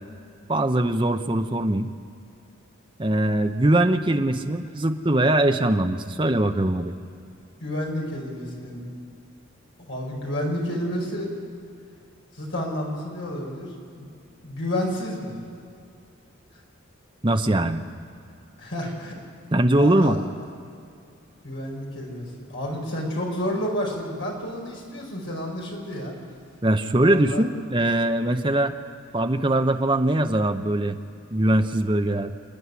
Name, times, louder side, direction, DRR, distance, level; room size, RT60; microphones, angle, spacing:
voice 1, 0.5-1.9 3.0-6.9 17.2-17.9 19.5-20.2 26.6-28.7 29.1-31.0 31.3-32.3, right 1 dB, 25° right, 6 dB, 0.8 m, -21 dB
voice 2, 7.6-8.8 9.9-11.3 12.3-14.1 14.4-15.4 18.6-19.1 19.8-20.2 21.4-26.1 27.0-27.4, equal, 65° left, -1 dB, 5.2 m, -30 dB
29.0 x 10.0 x 9.6 m, 2.5 s
head